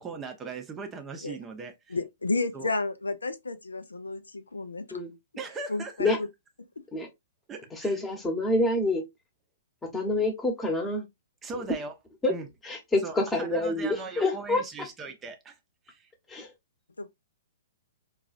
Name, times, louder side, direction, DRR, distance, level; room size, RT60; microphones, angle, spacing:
voice 1, 0.0-2.0 2.5-2.7 5.4-6.2 7.5-8.0 11.4-11.9 12.3-12.5 13.0-15.5 15.9-16.1, right 4 dB, 20° right, 0.6 m, -39 dB
voice 2, 1.9-4.9 5.7-6.3 17.0-17.1, left 3 dB, 80° left, 0.4 m, -31 dB
voice 3, 7.7-9.0 9.8-11.0 12.2-12.3 12.6-14.9 16.3-16.5, left 2 dB, 10° left, 1.0 m, -27 dB
3.8 x 2.3 x 2.4 m
figure-of-eight pair, 115°, 0 cm